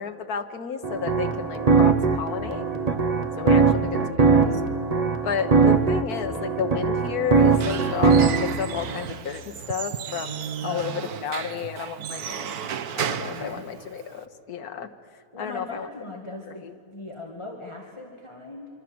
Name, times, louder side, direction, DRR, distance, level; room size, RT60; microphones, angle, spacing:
voice 1, 0.0-2.7 3.4-4.6 5.2-12.7 12.9-14.9 15.4-15.9 16.5-16.7, left 7 dB, 80° left, 7 dB, 1.6 m, -32 dB
sound 1, 0.8-8.5, right 4 dB, 30° right, 1.3 m, -21 dB
voice 2, 3.7-4.7 10.6-11.0 13.2-13.7 15.3-18.7, left 2 dB, 20° left, 0 dB, 2.0 m, -39 dB
Squeak / Wood, 7.3-14.2, right 8 dB, 85° right, 1.4 m, -34 dB
26.0 x 25.0 x 7.8 m, 2.3 s
omnidirectional pair, 1.6 m